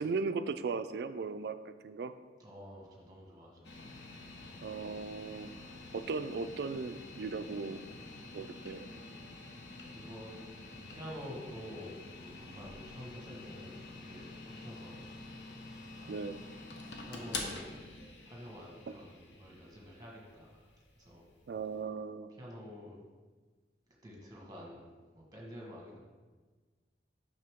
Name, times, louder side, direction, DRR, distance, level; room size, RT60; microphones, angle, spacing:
voice 1, 0.0-2.1 4.6-5.5 5.9-7.8 8.3-8.9 16.1-16.4 18.9-19.0 21.5-22.3, right 4 dB, 65° right, 11 dB, 0.3 m, -37 dB
voice 2, 2.4-3.8 8.2-9.2 9.9-10.4 10.7-15.1 16.0-16.4 17.0-17.8 18.2-20.7 20.9-21.2 22.4-23.0 24.0-24.9 25.1-26.0, equal, 20° right, -2 dB, 1.3 m, -49 dB
sound 1, 3.6-21.8, left 3 dB, 85° left, 0.9 m, -47 dB
6.6 x 5.9 x 3.6 m, 1.4 s
head